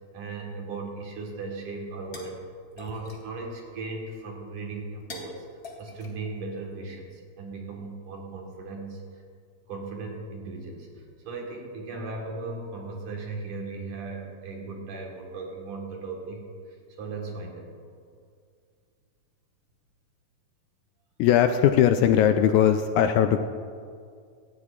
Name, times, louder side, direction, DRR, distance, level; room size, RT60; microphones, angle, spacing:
voice 1, 0.1-2.3 2.7-5.4 5.8-9.2 9.7-17.7, right 3 dB, 70° right, 0 dB, 3.0 m, -37 dB
sound 1, 1.7-7.0, left 3 dB, 35° left, 1.6 m, -49 dB
voice 2, 21.2-23.4, left 10 dB, 80° left, 8 dB, 1.8 m, -20 dB
18.0 x 13.5 x 2.5 m, 2.2 s
omnidirectional pair, 3.7 m